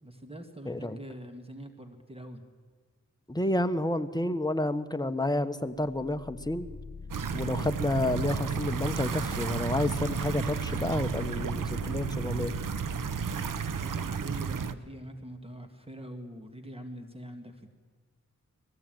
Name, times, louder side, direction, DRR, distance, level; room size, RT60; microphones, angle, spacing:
voice 1, 0.0-2.4 13.8-17.7, right 1 dB, 15° right, 6 dB, 1.9 m, -44 dB
voice 2, 0.6-1.0 3.3-6.7 7.3-12.5, left 1 dB, 10° left, 9 dB, 1.2 m, -30 dB
sound 1, 5.8-14.7, left 5 dB, 50° left, 1.6 m, -43 dB
sound 2, 7.1-14.7, right 7 dB, 75° right, 0.9 m, -33 dB
20.5 x 15.0 x 9.1 m, 1.5 s
cardioid pair, 60°, 32 cm